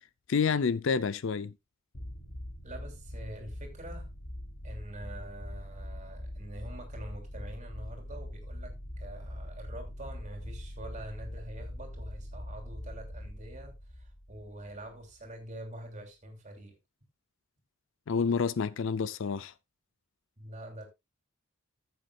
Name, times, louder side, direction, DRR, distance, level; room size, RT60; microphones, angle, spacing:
voice 1, 0.3-1.5 18.1-19.5, left 5 dB, 55° left, 0.4 m, -28 dB
sound 1, 1.9-15.3, left 1 dB, 70° left, 3.1 m, -42 dB
voice 2, 2.6-4.1 4.6-16.8 20.4-20.9, right 1 dB, 30° right, 2.9 m, -45 dB
14.5 x 7.8 x 2.3 m
head